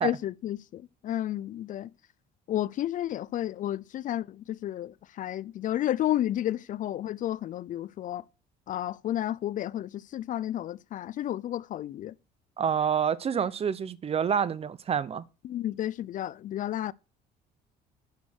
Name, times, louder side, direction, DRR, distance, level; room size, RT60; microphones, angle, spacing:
voice 1, 0.0-1.9 2.5-8.2 8.7-12.1 15.4-16.9, left 12 dB, 50° left, 0.4 m, -32 dB
voice 2, 12.6-15.2, right 7 dB, 35° right, 0.7 m, -27 dB
9.6 x 6.1 x 6.4 m
cardioid pair, 110°, 17 cm